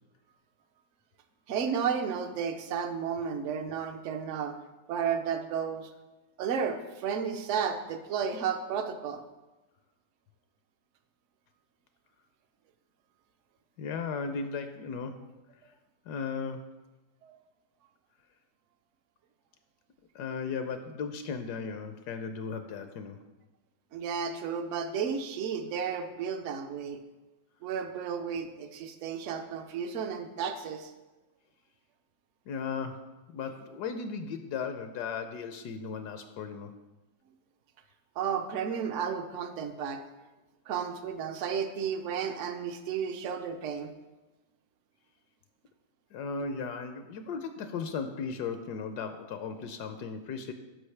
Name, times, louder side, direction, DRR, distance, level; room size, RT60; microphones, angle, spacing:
voice 1, 1.5-4.6 4.9-5.9 6.4-9.2 17.2-17.4 23.9-27.0 27.6-30.9 38.2-40.0 40.7-43.9, right 7 dB, 65° right, 7 dB, 0.8 m, -33 dB
voice 2, 13.8-15.2 16.1-16.7 20.1-23.2 32.5-36.8 46.1-50.5, left 5 dB, 75° left, 8 dB, 1.1 m, -36 dB
12.5 x 5.0 x 3.3 m, 1.1 s
omnidirectional pair, 1.8 m